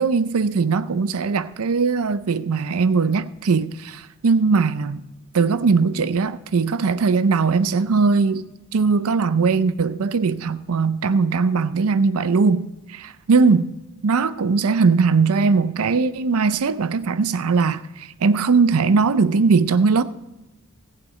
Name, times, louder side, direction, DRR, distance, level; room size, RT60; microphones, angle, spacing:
voice 1, 0.0-5.0 5.3-13.7 14.0-20.0, right 4 dB, 80° right, 0.5 m, -20 dB
15.0 x 8.6 x 4.2 m
head